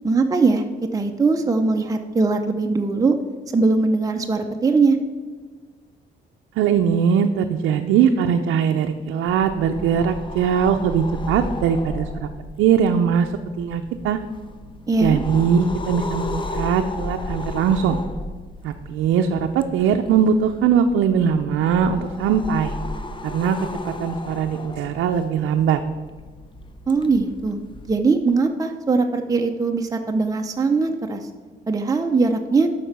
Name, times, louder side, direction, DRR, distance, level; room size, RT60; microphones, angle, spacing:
voice 1, 0.0-3.2 3.5-5.0 14.9-15.2 26.9-27.6 27.8-31.2 31.7-32.7, right 3 dB, 15° right, 4 dB, 0.6 m, -20 dB
voice 2, 6.6-12.3 12.6-13.3 13.6-14.2 15.0-18.0 18.6-22.7 23.3-23.6 23.8-25.8, right 7 dB, 85° right, 4 dB, 0.5 m, -20 dB
sound 1, 9.3-28.0, left 2 dB, 25° left, 0.8 m, -34 dB
7.6 x 5.8 x 6.7 m, 1.5 s
cardioid pair, 90°, 20 cm